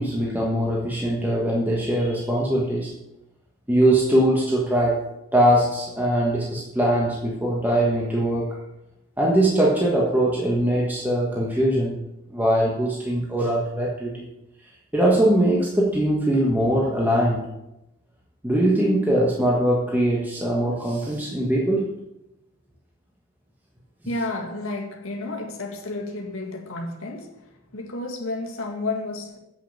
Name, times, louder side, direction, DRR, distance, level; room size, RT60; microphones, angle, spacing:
voice 1, 0.0-2.9 3.7-5.0 5.3-8.5 9.2-12.0 12.3-14.3 14.9-17.5 18.4-21.9, right 1 dB, 10° right, -4 dB, 1.3 m, -21 dB
voice 2, 24.0-29.4, left 2 dB, 70° left, 0 dB, 1.8 m, -31 dB
7.8 x 6.9 x 7.2 m, 0.89 s
head